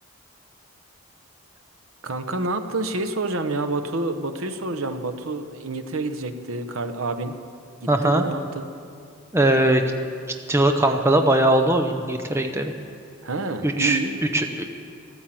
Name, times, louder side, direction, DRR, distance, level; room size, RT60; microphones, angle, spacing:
voice 1, 2.0-7.3 7.8-8.6 13.2-14.2, right 2 dB, 75° right, 8 dB, 1.0 m, -28 dB
voice 2, 7.9-8.2 9.3-9.8 10.5-12.7 13.6-14.0 14.3-14.6, right 1 dB, 10° right, 4 dB, 0.7 m, -20 dB
14.0 x 13.0 x 7.7 m, 2.3 s
head